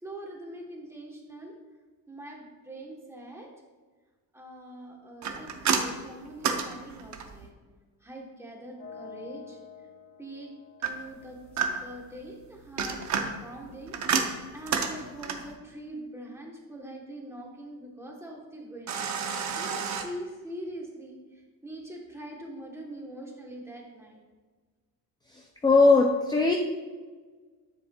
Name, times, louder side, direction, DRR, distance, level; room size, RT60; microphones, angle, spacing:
voice 1, 0.0-1.5 2.1-3.5 4.3-7.5 8.0-9.6 10.2-10.5 10.8-24.2, right 1 dB, 5° right, -1 dB, 1.1 m, -43 dB
sound 1, 5.2-7.5 10.8-12.1 12.6-15.6 18.9-20.0, right 6 dB, 45° right, 0.8 m, -30 dB
sound 2, 8.8-12.7, left 7 dB, 65° left, 2.3 m, -49 dB
voice 2, 25.3-26.5, left 3 dB, 10° left, 2 dB, 0.3 m, -20 dB
9.8 x 7.9 x 2.3 m, 1.4 s
cardioid pair, 160°, 39 cm